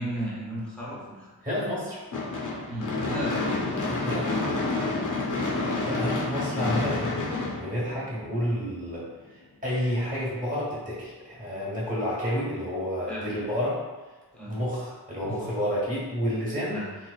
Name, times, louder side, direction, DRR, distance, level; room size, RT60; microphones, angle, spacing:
voice 1, 0.0-1.3 2.7-3.8 13.1-13.3 14.3-14.6 15.2-15.5 16.7-17.0, right 1 dB, ahead, -7 dB, 1.0 m, -35 dB
voice 2, 1.4-2.0 3.7-4.4 5.6-13.8 14.4-16.8, equal, 20° right, -8 dB, 1.2 m, -30 dB
Gunshot gunfire / Fireworks, 2.1-8.4, left 3 dB, 50° left, 0.7 m, -29 dB
3.0 x 2.0 x 2.4 m, 1.2 s
wide cardioid pair, 40°, 40 cm